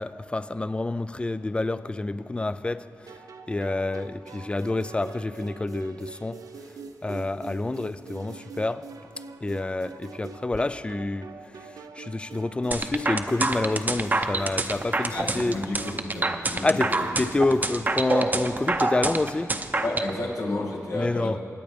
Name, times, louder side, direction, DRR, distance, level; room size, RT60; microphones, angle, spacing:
voice 1, 0.0-8.9 9.4-15.6 16.6-19.6 20.9-21.4, left 2 dB, 20° left, 0.4 m, -28 dB
sound 1, 3.1-19.0, right 4 dB, 85° right, 0.6 m, -44 dB
sound 2, 12.7-20.1, right 2 dB, 30° right, 0.7 m, -26 dB
voice 2, 15.1-16.9 19.8-21.4, left 2 dB, 85° left, 2.1 m, -31 dB
25.5 x 8.9 x 3.5 m
wide cardioid pair, 85°, 6 cm